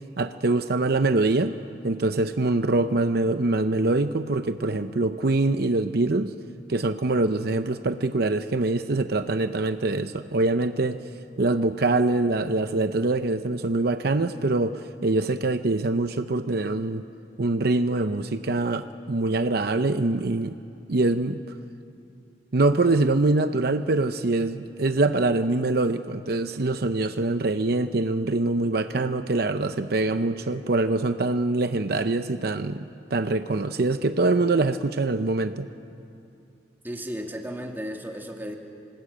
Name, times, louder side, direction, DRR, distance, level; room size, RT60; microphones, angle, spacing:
voice 1, 0.2-1.5 1.8-6.3 6.7-11.0 11.4-17.0 17.4-20.5 20.9-21.4 22.5-35.7, right 2 dB, 60° right, 9 dB, 0.8 m, -24 dB
voice 2, 36.8-38.6, equal, 10° right, 2 dB, 2.3 m, -34 dB
28.0 x 19.5 x 8.8 m, 2.6 s
head